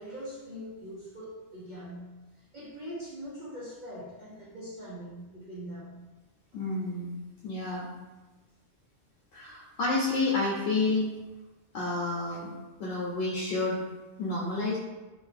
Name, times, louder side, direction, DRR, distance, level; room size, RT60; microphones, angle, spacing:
voice 1, 0.0-2.3 2.5-6.1, equal, 50° right, -8 dB, 0.6 m, -42 dB
voice 2, 6.5-7.1 7.4-7.9 9.3-11.1 11.7-12.5 12.8-13.8 14.2-14.8, left 2 dB, 85° left, -5 dB, 0.9 m, -29 dB
2.5 x 2.5 x 3.2 m, 1.2 s
omnidirectional pair, 1.2 m